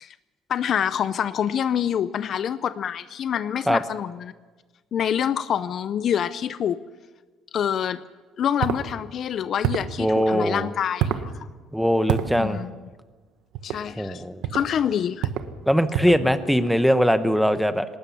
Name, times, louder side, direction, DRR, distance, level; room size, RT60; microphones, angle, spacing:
voice 1, 0.5-4.3 4.9-6.8 7.5-8.0 8.4-11.3 12.4-12.7 13.6-14.2 14.5-15.3, left 9 dB, 40° left, 14 dB, 0.5 m, -26 dB
sound 1, 8.6-8.8 9.6-9.9 11.0-11.3 12.1-12.3 13.5-13.8 14.4-14.7 15.2-15.5 15.9-16.3, right 10 dB, 70° right, 1.2 m, -26 dB
voice 2, 10.0-10.7 11.7-12.6 14.0-14.4 15.7-17.9, equal, ahead, 10 dB, 0.9 m, -21 dB
19.5 x 19.0 x 7.1 m, 1.3 s
cardioid pair, 165°, 0 cm